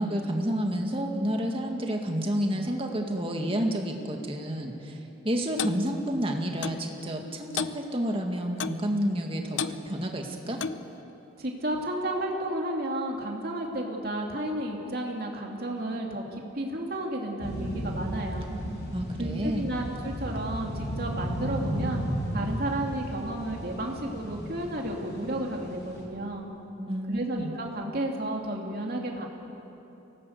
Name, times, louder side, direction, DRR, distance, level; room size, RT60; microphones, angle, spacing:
voice 1, 0.0-4.9 5.2-10.6 18.9-19.7 26.8-27.5, equal, 30° right, 2 dB, 2.0 m, -30 dB
Clock, 5.6-5.8 6.6-6.8 7.6-7.8 8.6-8.8 9.6-9.8 10.6-10.9, left 6 dB, 75° left, 0.7 m, -31 dB
voice 2, 11.4-18.5 19.2-22.0 22.3-26.5 27.1-29.3, right 1 dB, 50° right, 0 dB, 2.8 m, -32 dB
sound 1, 17.4-26.0, equal, 55° left, 6.0 m, -34 dB
24.0 x 18.0 x 8.1 m, 3.0 s
head